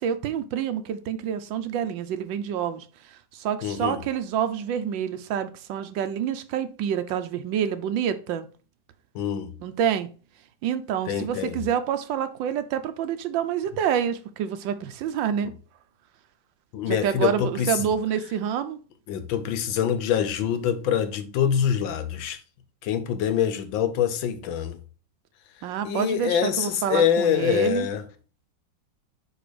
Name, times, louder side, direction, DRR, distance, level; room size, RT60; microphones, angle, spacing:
voice 1, 0.0-2.9 3.1-8.5 9.6-10.1 10.6-15.5 16.9-18.8 25.6-27.9, right 8 dB, 80° right, 1.4 m, -27 dB
voice 2, 3.6-4.0 9.1-9.5 11.1-11.6 16.7-17.9 19.1-22.4 22.8-24.8 25.8-28.0, left 9 dB, 85° left, 1.6 m, -25 dB
5.1 x 4.6 x 4.9 m
omnidirectional pair, 2.1 m